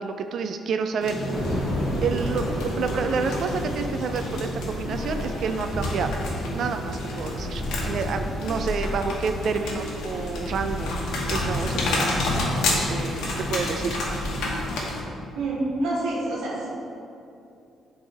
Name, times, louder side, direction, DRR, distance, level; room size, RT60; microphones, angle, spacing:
voice 1, 0.0-1.3 2.0-6.1 6.5-11.0 11.3-12.4 12.7-14.5, right 5 dB, 65° right, 7 dB, 0.3 m, -29 dB
sound 1, 1.0-15.0, left 2 dB, 85° left, 1.0 m, -30 dB
sound 2, 1.3-14.9, left 1 dB, 15° right, 1.2 m, -33 dB
voice 2, 15.3-16.7, right 2 dB, 90° right, -4 dB, 1.4 m, -27 dB
7.7 x 3.4 x 4.2 m, 2.6 s
cardioid pair, 90°, 0 cm